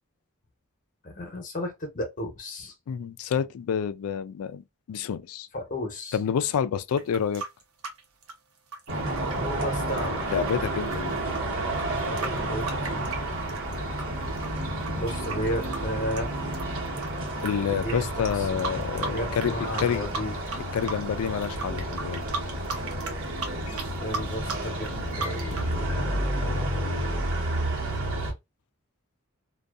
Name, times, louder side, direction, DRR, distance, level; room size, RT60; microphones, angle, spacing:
voice 1, 1.0-2.7 5.5-6.2 9.3-10.3 12.0-13.1 14.9-16.3 17.7-18.7 19.0-20.4 24.0-27.2, left 1 dB, 40° left, 0.8 m, -34 dB
voice 2, 2.9-5.5 6.1-7.4 10.3-11.2 17.4-20.1 20.7-22.3 23.7-23.8, left 7 dB, 85° left, 0.3 m, -28 dB
sound 1, 6.9-14.0 14.4-17.5 17.8-17.9 18.2-19.5 19.8-20.6 20.8-25.7, right 4 dB, 85° right, 0.8 m, -36 dB
sound 2, 8.9-28.3, right 1 dB, 60° right, 0.9 m, -30 dB
2.6 x 2.3 x 2.3 m
head